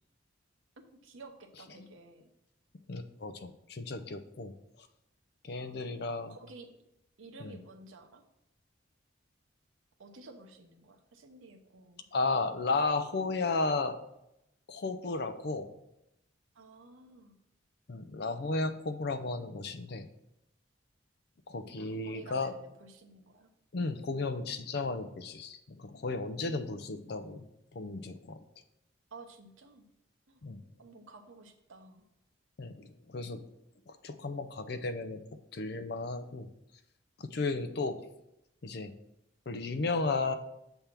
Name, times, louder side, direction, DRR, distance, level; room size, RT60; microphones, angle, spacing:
voice 1, 0.8-2.3 5.6-6.7 7.2-8.2 10.0-12.1 16.5-17.4 21.8-23.5 26.4-26.9 29.1-29.9 30.3-30.4 30.8-32.1, right 3 dB, 80° right, 4 dB, 0.9 m, -53 dB
voice 2, 2.9-4.5 5.4-6.3 7.4-7.6 12.1-14.0 14.7-15.7 17.9-20.1 21.5-22.5 23.7-27.5 27.7-28.4 30.4-30.6 32.6-33.4 33.9-35.2 35.5-36.5 37.2-37.9 38.6-38.9 39.5-40.4, left 3 dB, 50° left, 10 dB, 0.5 m, -34 dB
7.0 x 3.4 x 5.9 m, 0.84 s
head